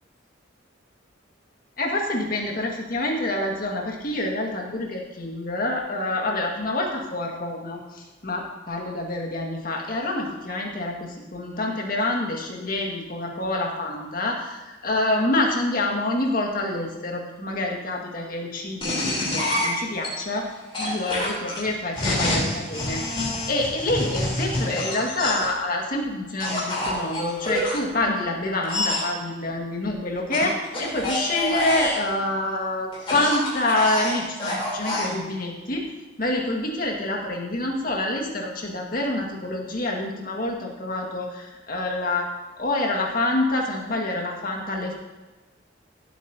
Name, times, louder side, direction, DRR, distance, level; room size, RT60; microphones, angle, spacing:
voice 1, 1.8-20.5 20.8-23.2 23.5-35.9 36.2-42.3 42.6-44.9, left 2 dB, 45° left, 0 dB, 1.9 m, -27 dB
sound 1, 18.8-20.1 20.7-25.5 26.4-27.8 28.6-29.1 30.3-32.0 32.9-35.1, left 1 dB, 30° left, 3.6 m, -27 dB
16.5 x 8.2 x 2.9 m, 1.2 s
head